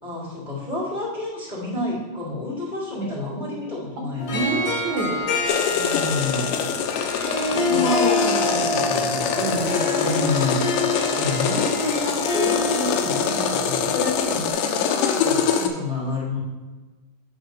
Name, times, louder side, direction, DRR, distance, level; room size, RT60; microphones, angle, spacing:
voice 1, 0.0-4.8 5.7-6.6 7.5-10.9 11.1-16.4, left 2 dB, 15° left, -7 dB, 2.2 m, -29 dB
voice 2, 3.0-4.0 4.3-5.3 7.7-7.9 9.4-10.2, right 3 dB, 70° right, -2 dB, 2.2 m, -30 dB
Harp, 4.2-14.5, left 2 dB, 55° left, 2.1 m, -27 dB
sound 1, 5.5-15.7, left 7 dB, 80° left, 2.3 m, -24 dB
7.7 x 5.0 x 5.6 m, 1.2 s
omnidirectional pair, 3.9 m